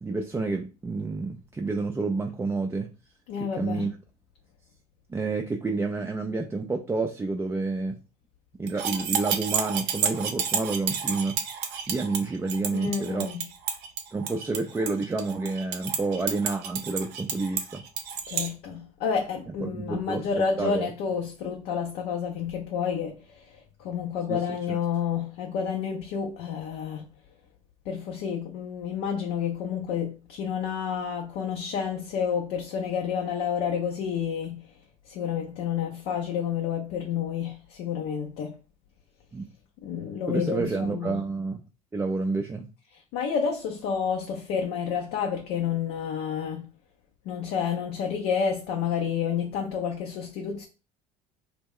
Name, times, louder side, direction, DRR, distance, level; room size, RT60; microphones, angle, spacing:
voice 1, 0.0-2.9 3.5-3.9 5.1-8.0 8.6-11.4 11.9-13.3 14.1-17.8 19.6-20.3 20.6-20.9 24.3-24.8 39.3-39.5 40.3-41.6 41.9-42.6, right 3 dB, 15° right, 0.3 m, -29 dB
voice 2, 3.3-3.9 12.7-13.5 18.3-23.5 23.8-27.1 27.9-34.6 35.1-38.6 39.8-41.2 43.1-46.7 47.3-50.7, left 7 dB, 65° left, 0.5 m, -30 dB
sound 1, 8.7-18.5, right 7 dB, 60° right, 0.6 m, -30 dB
2.2 x 2.1 x 3.6 m
hypercardioid pair, 65°, 19 cm